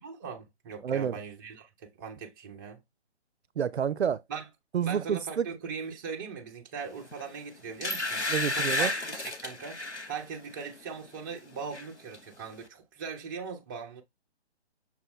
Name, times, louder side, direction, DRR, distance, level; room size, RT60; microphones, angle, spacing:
voice 1, 0.0-2.8 4.3-4.5 4.8-14.0, right 5 dB, 20° right, 0.7 m, -40 dB
voice 2, 0.8-1.2 3.6-4.2 4.7-5.5 8.3-8.9, right 8 dB, 70° right, 0.5 m, -29 dB
sound 1, 7.1-7.3 7.8-10.1 10.6-10.8 11.1-11.9 12.1-12.2, left 2 dB, 90° left, 1.1 m, -32 dB
6.2 x 2.2 x 3.6 m
figure-of-eight pair, 140°, 34 cm